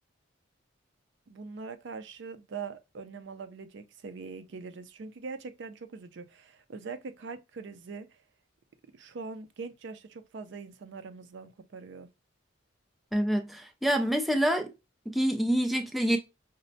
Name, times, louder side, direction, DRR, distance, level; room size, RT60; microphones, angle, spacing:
voice 1, 1.3-8.2 8.9-12.1, right 4 dB, 65° right, 0.4 m, -42 dB
voice 2, 13.1-14.7 15.1-16.2, equal, ahead, 0.4 m, -26 dB
5.2 x 2.1 x 2.6 m
head